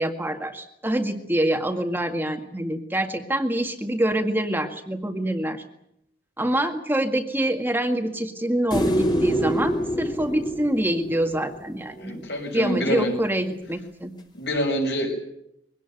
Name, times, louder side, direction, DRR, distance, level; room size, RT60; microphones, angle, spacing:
voice 1, 0.0-5.6 6.4-12.2 12.5-14.1, right 1 dB, 10° right, 5 dB, 1.9 m, -25 dB
sound 1, 8.7-12.0 14.6-14.7, equal, 25° left, 2.7 m, -26 dB
voice 2, 12.0-13.2 14.3-15.1, equal, 75° left, 2 dB, 6.9 m, -26 dB
23.0 x 18.0 x 9.4 m, 0.76 s
head